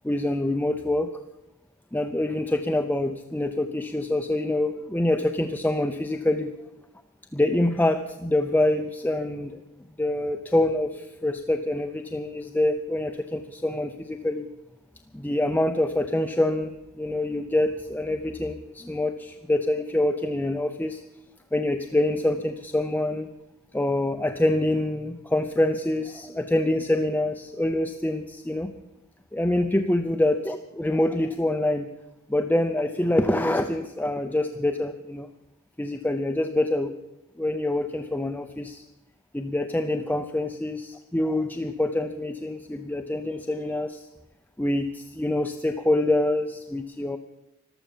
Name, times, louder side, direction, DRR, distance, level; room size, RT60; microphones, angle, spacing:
voice 1, 0.0-1.1 1.9-6.5 7.3-9.6 10.0-14.5 15.1-16.7 17.0-21.0 21.5-23.3 23.7-28.7 29.3-31.9 32.3-35.3 35.8-36.9 37.4-38.8 39.3-44.1 44.6-47.2, left 1 dB, 10° left, 6 dB, 0.6 m, -25 dB
14.0 x 12.5 x 7.3 m, 0.94 s
head